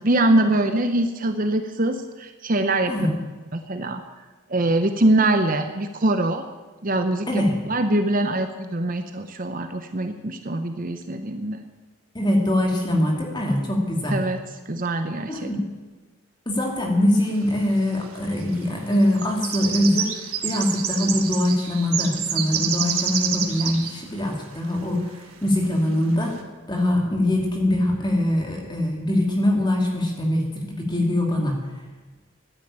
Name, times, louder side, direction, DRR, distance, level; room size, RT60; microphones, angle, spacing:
voice 1, 0.0-2.9 3.7-4.0 4.5-6.4 6.8-7.4 7.7-11.6 14.1-14.4 14.7-15.5, right 2 dB, 40° right, 7 dB, 0.8 m, -23 dB
voice 2, 12.1-14.2 15.3-15.7 16.5-26.4 26.7-31.6, left 1 dB, 20° left, 1 dB, 2.5 m, -23 dB
sound 1, 17.5-17.6 18.4-18.6 18.9-23.9 24.2-24.3 24.7-24.8 25.6-25.7 26.1-26.3, right 8 dB, 80° right, 1.6 m, -28 dB
13.0 x 9.8 x 8.8 m, 1.3 s
head